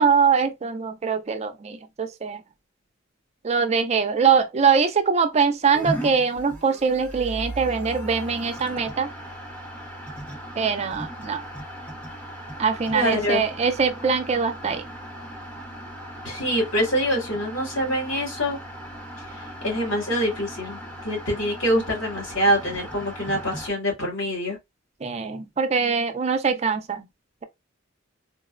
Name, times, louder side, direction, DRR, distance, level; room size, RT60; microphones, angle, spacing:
voice 1, 0.0-2.4 3.4-9.1 10.6-11.4 12.6-14.8 25.0-27.1, right 5 dB, 35° right, 0.4 m, -23 dB
sound 1, 5.7-23.7, right 1 dB, 5° left, 0.8 m, -37 dB
voice 2, 12.9-13.4 16.2-18.6 19.3-24.6, equal, 80° left, 1.8 m, -25 dB
3.8 x 2.0 x 2.4 m
head